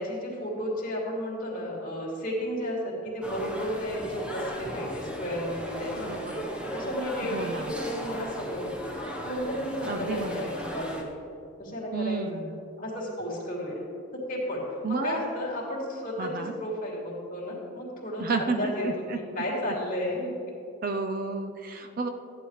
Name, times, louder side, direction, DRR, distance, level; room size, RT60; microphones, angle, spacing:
voice 1, 0.0-6.4 6.7-8.9 9.2-11.1 11.6-12.4 12.8-13.8 14.3-14.6 14.9-20.3, equal, 40° left, -5 dB, 2.8 m, -33 dB
sound 1, 3.2-11.0, equal, 5° right, 1.0 m, -36 dB
voice 2, 5.9-6.4 7.3-7.7 9.9-10.6 11.9-12.5 14.8-15.2 16.2-16.6 18.2-19.2 20.8-22.1, right 3 dB, 45° right, 5 dB, 0.5 m, -31 dB
14.5 x 9.5 x 3.3 m, 2.6 s
head